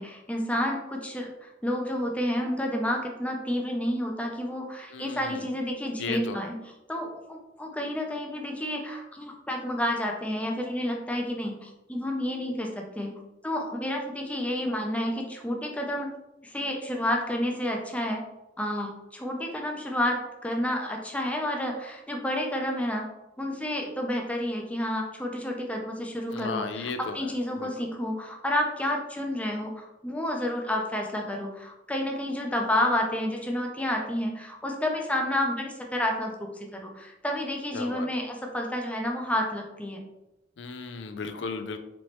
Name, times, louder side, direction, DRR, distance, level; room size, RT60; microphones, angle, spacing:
voice 1, 0.0-6.6 6.9-16.1 16.4-18.3 18.6-40.0, left 1 dB, 10° left, 1 dB, 0.6 m, -30 dB
voice 2, 4.9-5.5 6.0-6.5 26.3-27.7 37.7-38.1 40.6-41.8, left 4 dB, 85° left, 8 dB, 0.4 m, -35 dB
4.2 x 3.1 x 3.0 m, 0.96 s
head